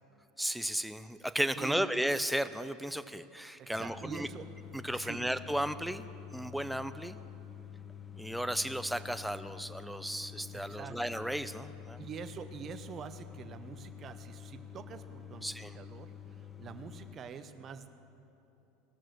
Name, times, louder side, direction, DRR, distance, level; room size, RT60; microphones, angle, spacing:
voice 1, 0.4-4.3 4.7-6.1 6.3-7.2 8.2-12.0 15.4-15.7, equal, ahead, 12 dB, 0.5 m, -34 dB
voice 2, 1.6-1.9 3.6-4.5 4.9-5.3 10.5-11.0 12.0-16.1 16.6-17.9, right 6 dB, 40° right, 9 dB, 0.8 m, -45 dB
sound 1, 3.7-17.2, left 8 dB, 20° left, 0.8 m, -48 dB
18.0 x 6.3 x 6.4 m, 2.9 s
hypercardioid pair, 85°, 0 cm